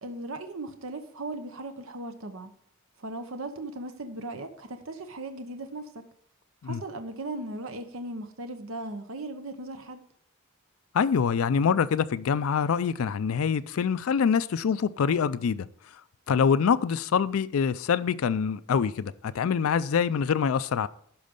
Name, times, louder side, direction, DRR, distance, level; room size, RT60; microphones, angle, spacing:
voice 1, 0.0-2.5 3.0-5.9 6.6-10.0, right 2 dB, 70° right, 0.9 m, -37 dB
voice 2, 10.9-15.6 16.3-20.9, left 6 dB, 75° left, 0.4 m, -25 dB
12.0 x 5.1 x 5.3 m
head